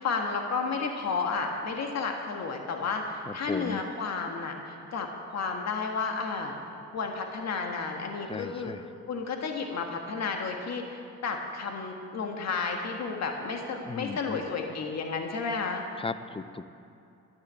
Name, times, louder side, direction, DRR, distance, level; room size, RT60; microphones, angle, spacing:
voice 1, 0.0-6.5 6.9-8.7 9.1-15.8, left 4 dB, 60° left, 3 dB, 1.6 m, -32 dB
voice 2, 3.3-3.8 8.3-8.8 13.8-14.4 16.0-16.7, left 4 dB, 20° left, 13 dB, 0.6 m, -36 dB
12.5 x 10.0 x 8.9 m, 2.6 s
cardioid pair, 90°, 30 cm